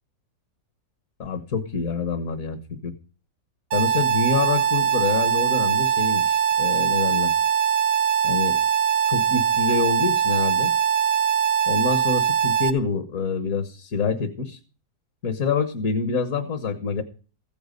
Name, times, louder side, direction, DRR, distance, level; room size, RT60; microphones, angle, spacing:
voice 1, 1.2-2.9 3.7-7.3 8.2-8.6 9.1-10.7 11.7-14.6 15.2-17.0, left 5 dB, 55° left, 8 dB, 1.6 m, -26 dB
sound 1, 3.7-12.7, right 9 dB, 80° right, 1.5 m, -21 dB
15.5 x 9.4 x 5.2 m, 0.37 s
omnidirectional pair, 1.8 m